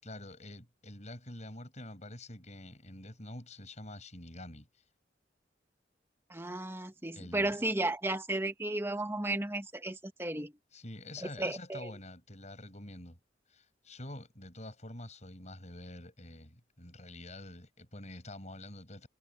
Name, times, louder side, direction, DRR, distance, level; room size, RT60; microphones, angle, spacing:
voice 1, 0.0-4.8 7.1-7.6 10.7-13.2 13.5-19.1, left 1 dB, 40° left, 8.0 m, -47 dB
voice 2, 6.3-10.5 11.2-11.9, right 2 dB, 15° right, 1.8 m, -34 dB
head